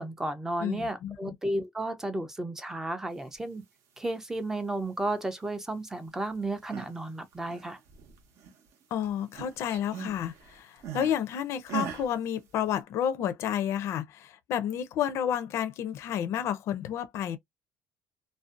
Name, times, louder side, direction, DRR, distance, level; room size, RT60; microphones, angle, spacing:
voice 1, 0.0-3.6 4.0-7.8, right 1 dB, 10° right, 0.4 m, -33 dB
voice 2, 0.6-1.3 8.9-17.4, left 9 dB, 55° left, 0.4 m, -31 dB
sound 1, 6.4-7.0 7.3-8.7 9.0-11.2 11.7-12.1, right 6 dB, 65° right, 0.7 m, -39 dB
2.5 x 2.1 x 2.3 m
cardioid pair, 170°, 6 cm